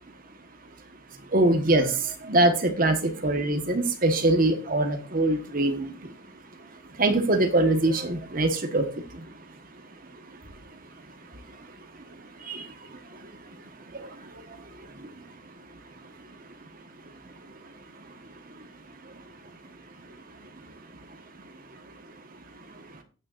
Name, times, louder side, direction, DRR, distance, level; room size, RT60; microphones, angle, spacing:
voice 1, 1.3-6.1 7.0-9.3 11.5-11.7 12.4-13.3 13.6-13.7 13.9-15.3 16.2-16.3 18.5-18.7 19.0-19.2 20.4-20.5 22.7-22.8, right 2 dB, 40° right, 6 dB, 1.3 m, -25 dB
16.0 x 6.5 x 2.5 m, 0.36 s
head